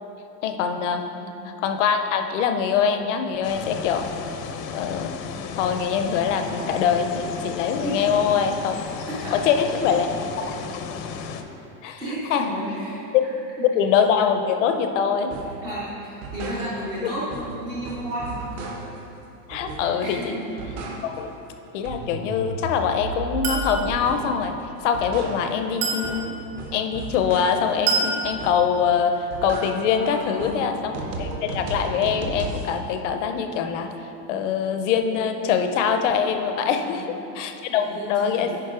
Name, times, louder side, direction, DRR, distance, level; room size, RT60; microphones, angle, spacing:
voice 1, 0.4-1.1 1.4-4.1 4.7-5.1 5.5-8.8 9.3-10.6 11.8-12.0 12.3-12.5 13.1-13.2 13.8-15.3 17.0-17.1 19.5-20.4 21.0-21.3 21.7-24.5 24.8-26.4 26.7-33.9 34.3-38.6, left 7 dB, 50° left, 7 dB, 0.6 m, -23 dB
voice 2, 1.0-1.3 7.8-8.0 9.1-9.3 12.0-13.3 13.6-13.7 15.6-18.6 20.0-20.5 29.9-30.8 36.6-37.2 37.7-38.6, equal, 10° right, -8 dB, 0.4 m, -33 dB
sound 1, 3.4-11.4, left 6 dB, 75° left, 0.8 m, -34 dB
sound 2, 15.3-15.6 16.0-17.0 17.3-19.1 19.5-20.1 20.4-21.4 21.7-24.4 24.8-27.8 28.2-28.8 29.1-32.7, right 3 dB, 40° right, 0.9 m, -35 dB
Chink clink, 23.4-23.8 25.8-26.1 27.9-28.2, right 4 dB, 60° right, 1.9 m, -24 dB
9.4 x 5.1 x 4.9 m, 2.8 s
supercardioid pair, 175°, 50 cm